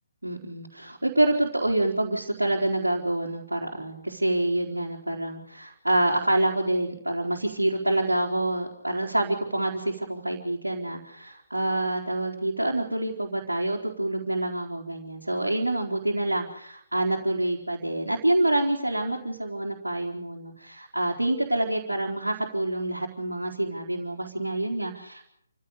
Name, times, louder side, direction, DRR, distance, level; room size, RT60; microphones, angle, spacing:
voice 1, 0.2-25.2, right 1 dB, 80° right, -2 dB, 4.1 m, -27 dB
28.5 x 16.0 x 8.3 m, 0.69 s
figure-of-eight pair, 140°, 0 cm